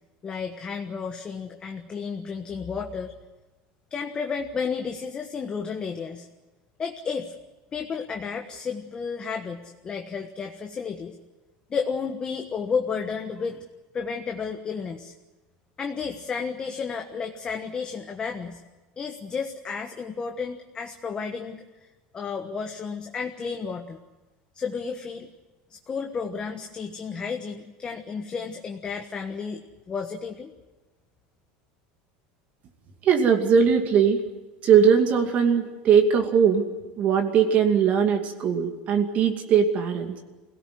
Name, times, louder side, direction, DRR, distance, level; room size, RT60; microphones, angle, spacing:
voice 1, 0.2-3.1 3.9-6.3 6.8-7.3 7.7-11.2 11.7-13.6 13.9-15.1 15.8-18.6 19.0-21.6 22.1-24.0 24.5-25.3 25.7-30.5, left 5 dB, 20° left, 4 dB, 1.3 m, -32 dB
voice 2, 33.0-34.2 34.6-36.7 37.0-40.2, right 7 dB, 40° right, 4 dB, 2.5 m, -20 dB
24.0 x 17.5 x 9.5 m, 1.2 s
supercardioid pair, 145°, 4 cm